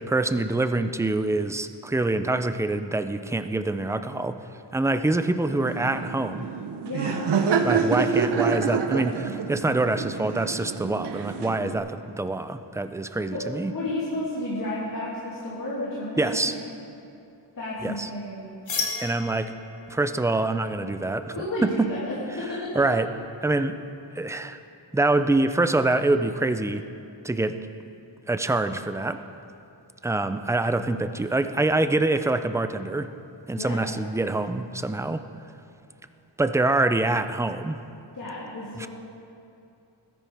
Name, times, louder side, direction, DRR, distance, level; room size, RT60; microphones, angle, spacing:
voice 1, 0.0-4.4 4.7-6.5 7.6-13.7 16.2-16.5 17.8-18.1 19.0-19.5 19.9-21.4 21.6-21.9 22.8-23.1 23.4-23.8 24.2-24.6 24.9-26.8 27.2-27.6 28.3-29.2 30.0-33.1 33.5-35.2 36.4-37.8 38.8-38.9, right 2 dB, 5° right, 10 dB, 0.3 m, -25 dB
Laughter, 5.5-11.8, right 6 dB, 65° right, 0.8 m, -27 dB
voice 2, 6.8-7.3 13.3-16.6 17.6-18.5 21.3-22.8 33.5-33.8 38.1-38.9, left 1 dB, 45° left, -9 dB, 2.6 m, -32 dB
sound 1, 18.7-24.2, left 4 dB, 85° left, 2.5 m, -38 dB
21.0 x 10.5 x 3.4 m, 2.6 s
wide cardioid pair, 160°, 44 cm